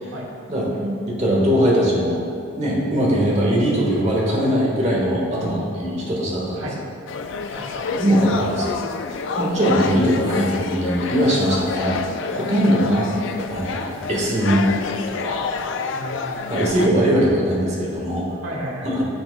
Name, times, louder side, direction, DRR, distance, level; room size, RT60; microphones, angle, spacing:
voice 1, 0.5-2.2 2.5-6.7 7.5-7.6 7.9-8.8 9.4-12.0 12.3-14.7 15.1-15.4 16.5-18.4 18.8-19.0, equal, 35° right, -4 dB, 1.4 m, -21 dB
voice 2, 5.3-5.8 6.6-6.8 7.5-8.0 12.6-12.7 15.9-16.6 18.4-19.0, right 1 dB, 75° right, -3 dB, 1.4 m, -33 dB
sound 1, 7.1-16.9, left 4 dB, 60° left, 0.4 m, -28 dB
10.5 x 5.8 x 2.2 m, 2.5 s
head